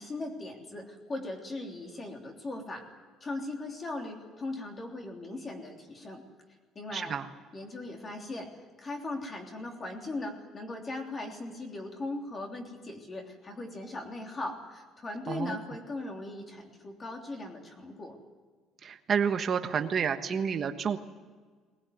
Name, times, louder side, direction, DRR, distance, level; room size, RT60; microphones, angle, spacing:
voice 1, 0.0-2.9 3.2-6.2 6.7-7.2 7.5-8.5 8.8-18.2, left 2 dB, 20° left, 2 dB, 3.2 m, -39 dB
voice 2, 6.9-7.3 15.3-15.6 18.8-21.0, right 7 dB, 30° right, 7 dB, 1.4 m, -29 dB
20.5 x 20.0 x 9.5 m, 1.5 s
cardioid pair, 165°, 0 cm